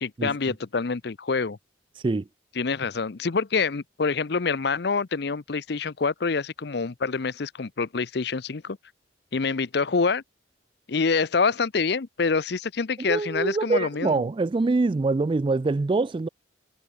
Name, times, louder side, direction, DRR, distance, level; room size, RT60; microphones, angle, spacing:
voice 1, 0.0-1.6 2.6-8.8 9.3-10.2 10.9-14.2, left 4 dB, 55° left, 0.6 m, -26 dB
voice 2, 13.0-16.3, right 3 dB, 25° right, 0.3 m, -24 dB
head